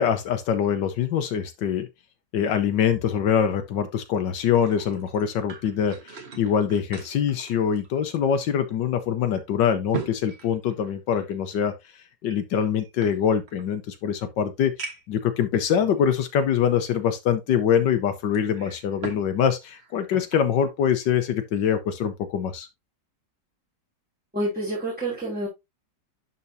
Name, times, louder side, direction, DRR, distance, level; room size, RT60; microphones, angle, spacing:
voice 1, 0.0-1.9 2.3-11.7 12.2-22.7, left 8 dB, 85° left, 1.5 m, -24 dB
sound 1, 4.5-8.4 8.7-8.8 9.4-11.4 12.2-13.7 14.2-14.3 14.8-15.2 16.0-16.1 18.3-19.3 19.6-20.5 20.9-21.1, right 5 dB, 40° right, 1.5 m, -40 dB
voice 2, 24.3-25.5, right 1 dB, 5° right, 2.7 m, -28 dB
11.0 x 4.5 x 2.7 m
omnidirectional pair, 1.9 m